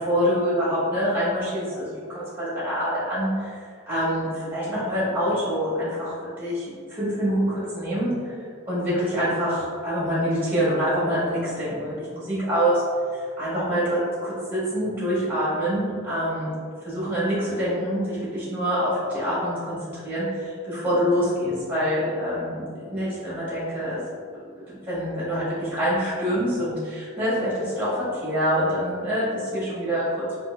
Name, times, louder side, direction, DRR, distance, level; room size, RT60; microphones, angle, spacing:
voice 1, 0.0-8.3 8.7-12.8 13.1-16.5 16.8-19.8 20.0-24.0 24.3-30.2, equal, 10° right, -10 dB, 1.5 m, -26 dB
4.2 x 2.6 x 2.5 m, 2.1 s
head